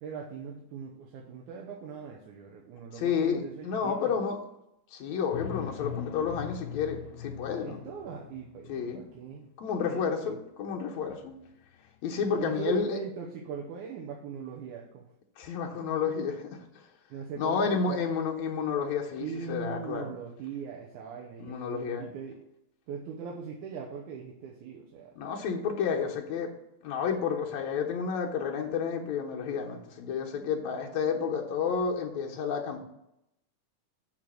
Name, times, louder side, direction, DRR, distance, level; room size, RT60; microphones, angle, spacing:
voice 1, 0.0-4.2 7.6-9.5 9.8-10.4 12.2-15.1 15.5-15.6 17.1-18.0 19.2-22.4 22.9-25.1, right 6 dB, 80° right, -1 dB, 2.3 m, -40 dB
voice 2, 2.9-4.4 4.9-7.8 8.7-9.0 9.6-11.4 12.0-13.0 15.4-16.8 17.4-20.1 21.4-22.1 25.2-26.5 26.8-32.8, left 6 dB, 70° left, 1 dB, 2.2 m, -31 dB
sound 1, 5.3-9.2 11.1-11.5 11.9-12.0 12.3-12.9, left 9 dB, 90° left, 2.2 m, -41 dB
7.5 x 3.9 x 6.3 m, 0.82 s
omnidirectional pair, 3.6 m